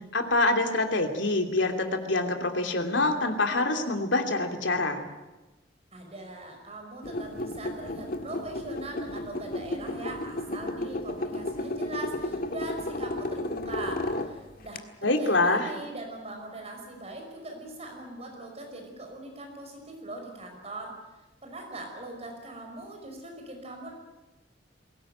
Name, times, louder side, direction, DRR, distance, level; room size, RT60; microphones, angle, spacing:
voice 1, 0.1-5.0 15.0-15.7, left 2 dB, 80° left, 5 dB, 3.0 m, -25 dB
voice 2, 5.9-21.0 21.4-23.9, right 2 dB, 35° right, 3 dB, 5.5 m, -41 dB
sound 1, 7.0-14.8, left 1 dB, 50° left, 1.7 m, -33 dB
22.0 x 18.5 x 9.3 m, 1.1 s
head